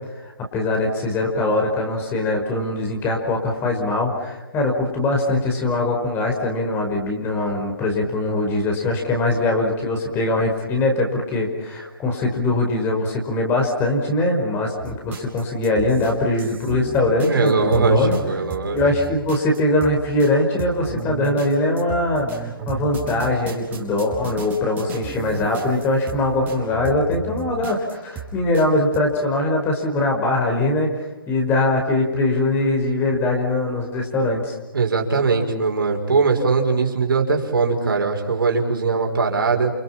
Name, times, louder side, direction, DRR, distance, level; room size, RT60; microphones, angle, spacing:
voice 1, 0.2-18.2 18.7-30.9 31.3-34.6, left 2 dB, 20° left, 1 dB, 5.4 m, -22 dB
sound 1, 14.8-28.7 28.9-29.0, right 5 dB, 15° right, 5.1 m, -35 dB
voice 2, 17.3-18.8 34.7-39.7, right 4 dB, 70° right, 2 dB, 5.8 m, -20 dB
29.5 x 29.0 x 5.9 m, 1.1 s
figure-of-eight pair, 140°, 12 cm